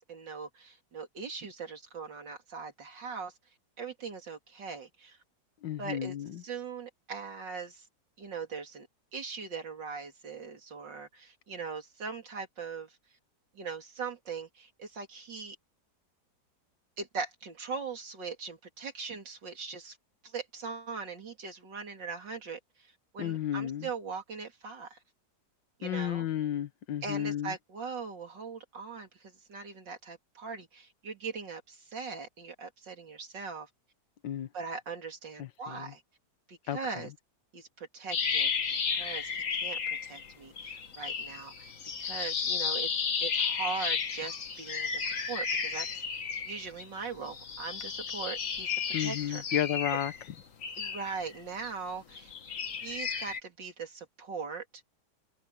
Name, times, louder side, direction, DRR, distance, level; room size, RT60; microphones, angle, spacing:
voice 1, 0.1-3.3 3.8-5.2 5.8-6.2 6.4-7.8 8.2-8.9 9.1-13.0 13.5-15.6 17.0-20.0 20.2-25.0 25.8-26.3 27.0-33.7 34.5-36.0 36.5-37.1 37.5-38.6 38.9-41.7 42.0-42.9 43.2-49.4 50.8-52.3 52.8-54.7, right 5 dB, 80° right, 3.5 m, -40 dB
voice 2, 5.6-6.4 23.2-23.9 25.8-27.5 34.2-34.5 35.4-35.9 36.7-37.1 48.9-50.1, left 11 dB, 85° left, 1.7 m, -33 dB
sound 1, 38.1-40.3 40.6-46.9 47.3-51.7 52.1-53.4, left 6 dB, 50° left, 1.7 m, -33 dB
omnidirectional pair, 1.9 m